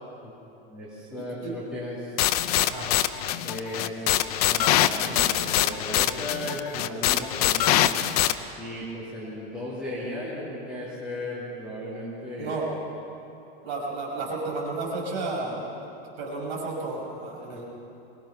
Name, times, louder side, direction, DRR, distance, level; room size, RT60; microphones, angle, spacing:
voice 1, 0.7-2.2 3.4-7.9 8.6-12.6 17.5-17.6, left 1 dB, 5° right, -9 dB, 3.0 m, -36 dB
sound 1, 2.2-8.3, left 13 dB, 40° left, 0.6 m, -23 dB
voice 2, 2.6-3.0 12.4-12.7 13.6-15.6 16.2-17.6, right 3 dB, 45° right, -2 dB, 6.1 m, -32 dB
23.5 x 19.0 x 5.9 m, 2.9 s
supercardioid pair, 175°, 31 cm